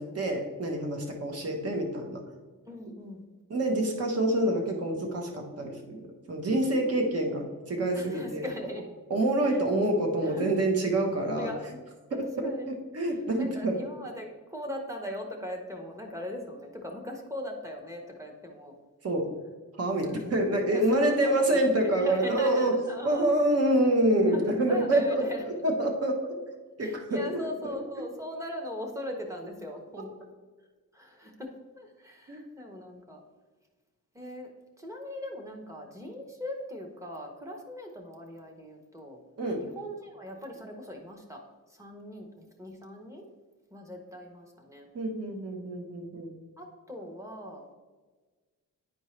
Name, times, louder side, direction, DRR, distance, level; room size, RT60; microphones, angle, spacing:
voice 1, 0.0-2.2 3.5-8.4 9.1-11.5 12.1-13.7 19.0-19.3 19.8-22.7 23.0-26.3 26.8-27.2 32.3-32.4 39.4-39.6 44.9-46.3, right 1 dB, 45° right, 2 dB, 1.1 m, -27 dB
voice 2, 2.7-3.2 7.9-8.9 9.5-9.6 10.2-10.7 11.2-11.8 12.1-12.7 13.0-18.7 20.0-20.3 20.7-23.4 24.3-25.4 26.8-30.1 30.9-33.2 34.1-34.5 34.8-39.2 39.6-41.4 41.7-43.3 43.7-44.9 46.6-47.7, left 1 dB, 10° right, 1 dB, 0.9 m, -40 dB
10.0 x 4.4 x 3.2 m, 1.4 s
wide cardioid pair, 160°, 33 cm